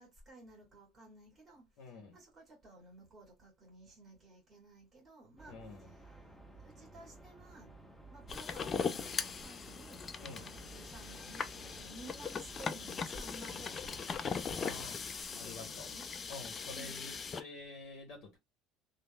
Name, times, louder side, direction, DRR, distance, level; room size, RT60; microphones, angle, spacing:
voice 1, 0.0-1.6 2.1-6.1 6.6-7.7 8.1-16.0 16.7-17.0, right 2 dB, 30° right, 1.8 m, -55 dB
voice 2, 1.8-2.2 5.5-5.9 10.2-10.5 14.6-15.0 15.3-15.9 16.3-18.4, left 3 dB, 60° left, 1.1 m, -48 dB
sound 1, 5.4-14.9, right 2 dB, 10° left, 1.1 m, -55 dB
sound 2, 8.3-17.4, left 5 dB, 30° left, 0.3 m, -40 dB
3.4 x 2.2 x 2.2 m
cardioid pair, 125°, 0 cm